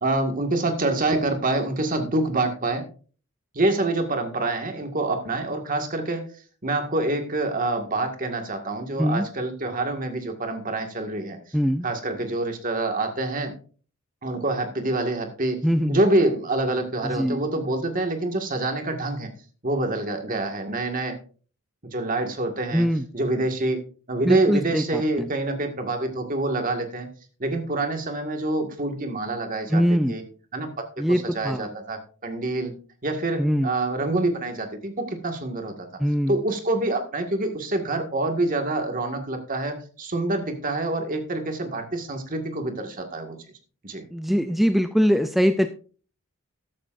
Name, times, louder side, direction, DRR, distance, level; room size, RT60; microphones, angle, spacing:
voice 1, 0.0-2.8 3.5-6.3 6.6-11.4 11.8-13.6 14.2-15.6 15.9-19.3 19.6-21.2 21.9-22.9 23.1-23.8 24.1-27.1 27.4-29.8 30.1-30.2 30.5-32.7 33.0-35.9 36.3-43.4 43.8-44.0, right 2 dB, 40° right, 5 dB, 1.9 m, -26 dB
voice 2, 11.5-11.9 15.6-16.0 17.0-17.4 22.7-23.1 24.2-25.3 29.7-30.2 31.0-31.7 33.4-33.7 36.0-36.4 44.1-45.7, equal, ahead, 8 dB, 0.4 m, -22 dB
13.5 x 11.5 x 2.6 m, 0.39 s
head